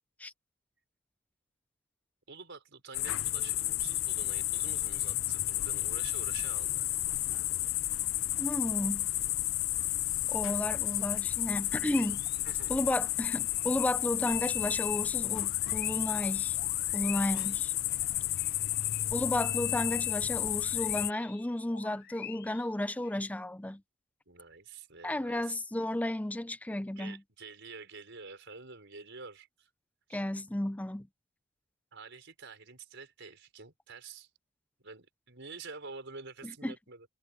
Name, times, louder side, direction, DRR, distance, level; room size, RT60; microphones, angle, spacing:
voice 1, 2.3-6.9 12.4-12.7 18.5-18.9 24.3-25.6 27.0-29.7 30.1-30.2 31.9-34.3 34.8-37.1, right 4 dB, 60° right, 5.8 m, -48 dB
sound 1, 2.9-21.1, left 15 dB, 70° left, 0.7 m, -32 dB
voice 2, 8.4-9.1 10.3-12.2 12.7-16.6 16.9-17.7 19.1-23.8 25.0-27.2 30.1-31.1 36.4-36.7, left 1 dB, 5° left, 0.5 m, -33 dB
sound 2, 11.7-14.0 14.3-19.1 19.4-23.2, left 8 dB, 50° left, 1.1 m, -47 dB
head